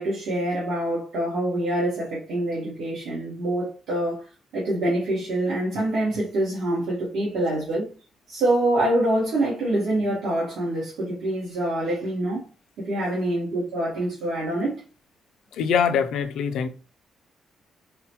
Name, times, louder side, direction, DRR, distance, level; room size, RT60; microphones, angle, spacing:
voice 1, 0.0-4.3 4.5-7.9 8.3-12.4 12.8-14.8, right 1 dB, 85° right, 1.2 m, -25 dB
voice 2, 15.6-16.7, left 7 dB, 85° left, 0.4 m, -23 dB
3.8 x 2.1 x 2.9 m
cardioid pair, 170°, 0 cm